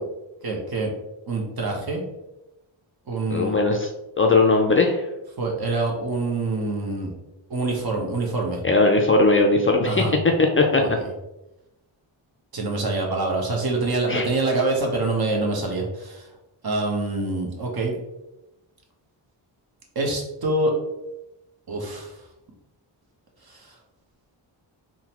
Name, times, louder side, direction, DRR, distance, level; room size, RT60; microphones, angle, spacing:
voice 1, 0.4-0.9 1.3-2.0 3.1-3.6 5.4-7.1 7.5-8.6 9.8-10.1 10.8-11.1 12.5-16.3 16.6-17.9 19.9-20.7 21.7-22.1 23.5-23.7, right 2 dB, 50° right, 0 dB, 1.0 m, -25 dB
voice 2, 3.3-3.9 4.2-5.0 8.6-10.1 10.4-11.0 14.1-14.3, left 3 dB, 30° left, 2 dB, 0.4 m, -19 dB
3.7 x 2.2 x 2.9 m, 0.96 s
cardioid pair, 55°, 47 cm